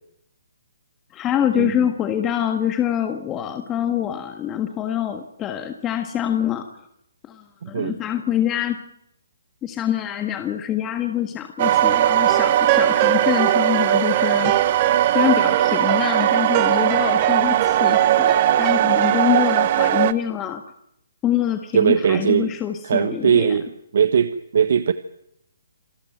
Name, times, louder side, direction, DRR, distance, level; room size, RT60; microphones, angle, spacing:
voice 1, 1.1-6.7 7.2-8.8 9.6-14.5 15.1-20.7 21.2-23.6, left 10 dB, 15° left, 7 dB, 1.5 m, -25 dB
voice 2, 7.6-8.0 21.7-22.5 22.8-24.9, right 7 dB, 60° right, 12 dB, 1.3 m, -20 dB
sound 1, 11.6-20.1, right 11 dB, 40° right, 1.3 m, -19 dB
sound 2, 12.2-19.2, right 13 dB, 25° right, 1.6 m, -27 dB
27.5 x 14.0 x 9.2 m, 0.76 s
hypercardioid pair, 155°, 0 cm